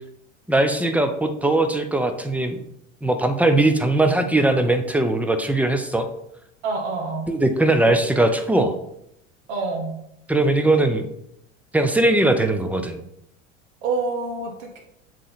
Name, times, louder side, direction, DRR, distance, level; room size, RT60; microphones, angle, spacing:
voice 1, 0.5-2.6 3.0-6.1 7.3-8.7 10.3-11.1 11.7-13.0, right 2 dB, 5° right, 8 dB, 0.6 m, -20 dB
voice 2, 6.6-7.3 9.5-9.9 13.8-14.8, right 3 dB, 65° right, 0 dB, 1.4 m, -27 dB
7.6 x 3.3 x 4.0 m, 0.77 s
hypercardioid pair, 80°, 38 cm